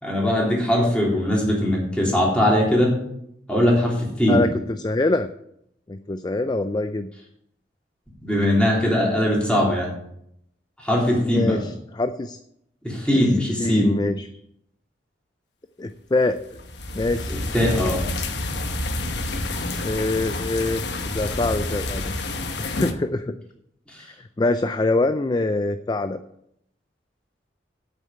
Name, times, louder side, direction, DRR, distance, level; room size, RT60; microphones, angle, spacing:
voice 1, 0.0-3.0 3.5-4.4 8.2-9.9 10.8-11.6 12.8-14.0 17.3-18.0 23.9-24.1, left 1 dB, 5° left, -3 dB, 3.4 m, -21 dB
voice 2, 4.3-5.3 5.9-7.1 11.3-12.4 13.1-13.2 13.6-14.3 15.8-16.4 16.9-17.5 19.5-22.2 22.6-23.4 24.2-26.2, left 2 dB, 25° left, 10 dB, 0.4 m, -24 dB
sound 1, 16.4-22.9, left 2 dB, 75° left, 1.2 m, -28 dB
8.6 x 6.8 x 8.6 m, 0.75 s
head